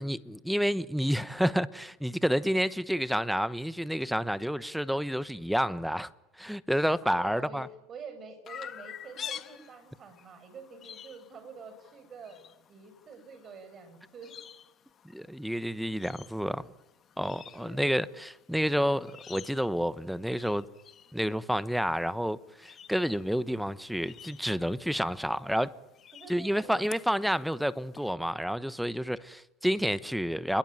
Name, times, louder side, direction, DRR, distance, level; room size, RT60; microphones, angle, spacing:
voice 1, 0.0-6.1 6.4-7.7 15.1-16.7 17.2-20.7 21.1-25.7 26.3-30.6, equal, ahead, 1.0 m, -29 dB
voice 2, 7.0-12.4 12.7-14.3 17.5-18.1 26.1-26.8, right 4 dB, 35° right, 7.3 m, -47 dB
Chirp tweet, 8.5-28.1, left 8 dB, 35° left, 1.6 m, -49 dB
30.0 x 22.0 x 9.0 m
supercardioid pair, 110°, 0 cm